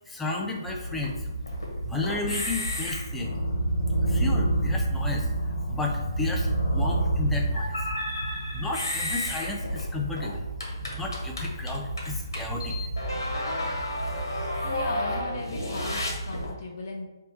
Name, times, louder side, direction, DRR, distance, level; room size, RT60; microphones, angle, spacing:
voice 1, 0.1-1.3 1.8-3.3 4.1-5.3 5.7-7.9 8.5-10.5 10.9-12.7, left 3 dB, 5° left, -1 dB, 0.4 m, -33 dB
sound 1, 0.7-16.5, right 1 dB, 85° left, 1.3 m, -29 dB
voice 2, 14.6-17.1, left 3 dB, 45° left, -1 dB, 0.7 m, -37 dB
3.5 x 2.7 x 4.3 m, 1.1 s
hypercardioid pair, 155°, 2 cm